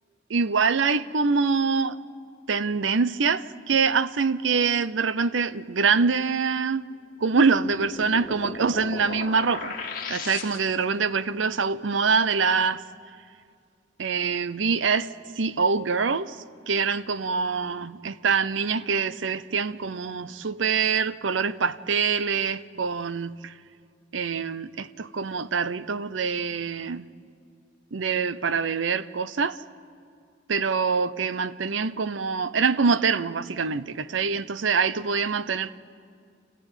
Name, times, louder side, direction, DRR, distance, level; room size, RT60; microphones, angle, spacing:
voice 1, 0.3-2.0 2.5-6.9 7.2-12.8 14.0-15.1 15.4-16.4 16.7-23.5 24.1-27.0 27.9-29.6 30.5-35.7, right 5 dB, 80° right, 0.7 m, -25 dB
sound 1, 7.4-11.0, left 4 dB, 50° left, 2.0 m, -37 dB
29.5 x 14.0 x 9.1 m
head